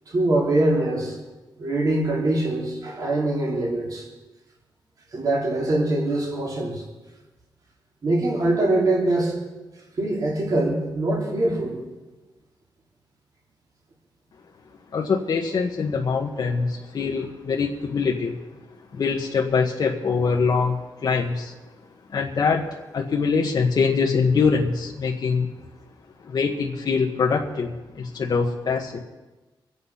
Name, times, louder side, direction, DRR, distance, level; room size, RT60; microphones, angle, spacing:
voice 1, 0.1-1.1 1.6-4.0 5.1-6.8 8.0-9.3 10.0-11.8, right 2 dB, 45° right, -2 dB, 3.2 m, -23 dB
voice 2, 14.9-18.4 18.9-21.5 22.1-22.7 22.9-25.5 26.2-29.0, left 5 dB, 50° left, -2 dB, 1.4 m, -23 dB
24.5 x 8.4 x 5.7 m, 1.1 s
wide cardioid pair, 170°, 9 cm